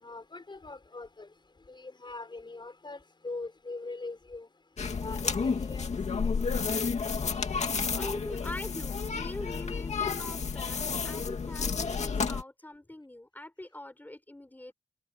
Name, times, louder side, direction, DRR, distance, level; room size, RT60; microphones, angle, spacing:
voice 1, 0.0-1.3 1.7-4.5 5.0-5.9 6.2-6.3, left 3 dB, 45° left, 6.4 m, -42 dB
sound 1, 4.8-12.4, left 5 dB, 90° left, 2.3 m, -31 dB
voice 2, 8.0-14.7, left 1 dB, 15° left, 5.2 m, -43 dB
wide cardioid pair, 85°, 11 cm